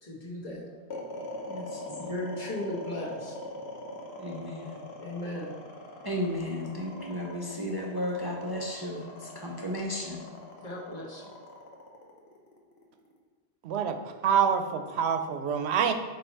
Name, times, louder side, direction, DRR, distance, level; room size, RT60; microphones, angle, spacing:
voice 1, 0.0-0.7 2.0-3.4 5.0-5.5 10.6-11.2, left 1 dB, 45° left, -5 dB, 1.5 m, -36 dB
sound 1, 0.9-13.2, left 2 dB, 80° left, 1.2 m, -42 dB
voice 2, 1.5-2.4 4.2-4.8 6.0-10.2, left 1 dB, 25° right, -2 dB, 0.6 m, -34 dB
voice 3, 13.6-14.0 14.2-15.9, right 7 dB, 85° right, 7 dB, 0.8 m, -26 dB
7.9 x 2.9 x 4.5 m, 1.5 s
omnidirectional pair, 1.1 m